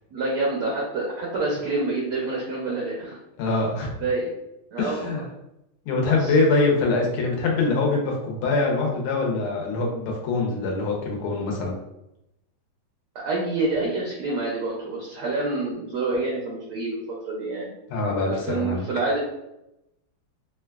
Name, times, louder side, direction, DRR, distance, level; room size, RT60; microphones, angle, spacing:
voice 1, 0.1-3.2 4.0-4.3 4.7-5.2 6.0-6.3 13.2-17.0 17.3-17.7 18.3-19.2, right 3 dB, 75° right, -3 dB, 0.9 m, -27 dB
voice 2, 3.4-3.9 4.8-5.2 5.9-11.7 17.9-18.8, left 3 dB, 80° left, 0 dB, 1.5 m, -24 dB
3.7 x 2.2 x 2.2 m, 0.88 s
omnidirectional pair, 2.4 m